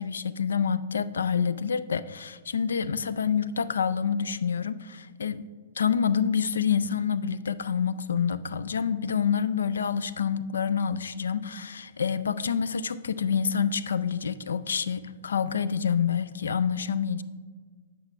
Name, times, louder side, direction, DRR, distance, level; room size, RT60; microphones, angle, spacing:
voice 1, 0.0-5.5 5.8-17.2, left 7 dB, 80° left, 15 dB, 0.4 m, -27 dB
8.3 x 7.4 x 3.2 m, 1.5 s
hypercardioid pair, 125°, 0 cm